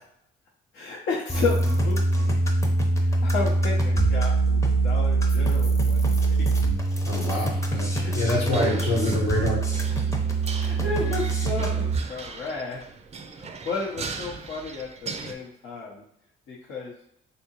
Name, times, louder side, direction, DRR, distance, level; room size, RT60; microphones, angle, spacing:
voice 1, 0.7-2.4 3.0-6.4 8.0-8.1 10.5-12.8 13.4-16.0 16.5-17.0, left 4 dB, 70° left, -5 dB, 0.7 m, -32 dB
sound 1, 1.3-12.0, right 3 dB, 15° left, 0.7 m, -23 dB
voice 2, 7.0-9.6, left 1 dB, 85° left, -3 dB, 1.1 m, -26 dB
sound 2, 8.5-15.3, right 4 dB, 30° right, 0.4 m, -38 dB
3.4 x 2.7 x 2.8 m, 0.74 s
cardioid pair, 90°, 20 cm